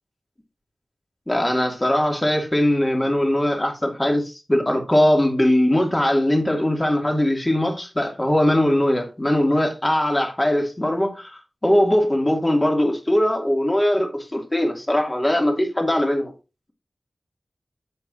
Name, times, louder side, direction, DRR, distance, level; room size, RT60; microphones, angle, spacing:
voice 1, 1.3-16.3, left 1 dB, 20° left, 2.5 m, -20 dB
8.7 x 8.2 x 2.7 m
wide cardioid pair, 90°, 0 cm